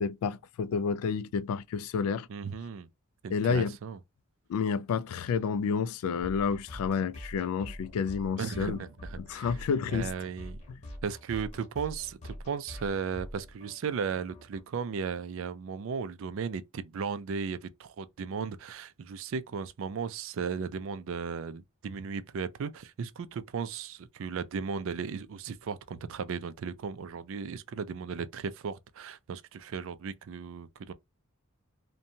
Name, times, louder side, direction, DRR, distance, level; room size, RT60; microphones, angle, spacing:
voice 1, 0.0-2.3 3.3-3.8 4.5-8.8 9.2-10.1 10.7-10.8, left 6 dB, 80° left, 0.3 m, -30 dB
voice 2, 2.3-2.9 3.2-4.0 8.4-9.5 9.9-10.6 11.0-30.9, right 6 dB, 65° right, 0.3 m, -36 dB
sound 1, 6.2-14.6, equal, 30° left, 0.9 m, -44 dB
2.6 x 2.2 x 2.7 m
head